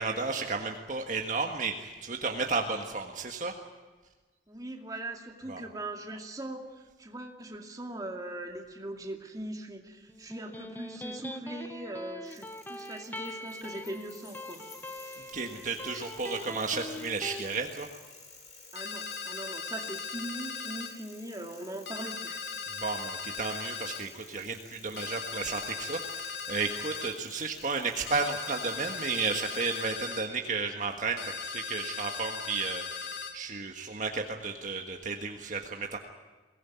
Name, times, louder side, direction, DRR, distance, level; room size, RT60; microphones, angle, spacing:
voice 1, 0.0-3.5 5.5-5.6 15.3-17.9 22.8-36.0, right 4 dB, 45° right, 3 dB, 1.6 m, -33 dB
voice 2, 4.5-14.6 18.7-22.4, right 1 dB, 20° right, 2 dB, 2.4 m, -40 dB
Electric guitar, 10.1-17.5, left 1 dB, 10° left, 1.0 m, -42 dB
sound 1, 12.3-29.9, left 4 dB, 45° left, 7.0 m, -53 dB
sound 2, 18.8-20.9 21.9-24.0 25.0-27.2 28.1-30.3 31.2-33.4, left 6 dB, 85° left, 2.3 m, -38 dB
22.5 x 18.5 x 9.5 m, 1.3 s
head